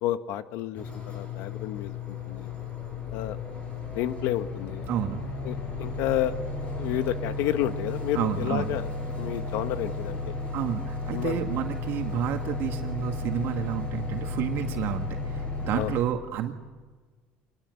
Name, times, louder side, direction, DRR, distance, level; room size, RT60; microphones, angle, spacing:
voice 1, 0.0-2.5 3.1-3.4 3.9-4.8 5.4-6.4 6.8-8.9 9.1-10.3 11.1-11.4 15.7-16.0, left 12 dB, 70° left, 10 dB, 1.4 m, -30 dB
sound 1, 0.8-16.0, left 3 dB, 30° left, 7.2 m, -34 dB
voice 2, 4.9-5.2 6.3-6.4 8.2-8.8 10.5-16.5, right 10 dB, 55° right, 5 dB, 2.0 m, -30 dB
25.5 x 20.5 x 8.1 m, 1.4 s
cardioid pair, 130°, 5 cm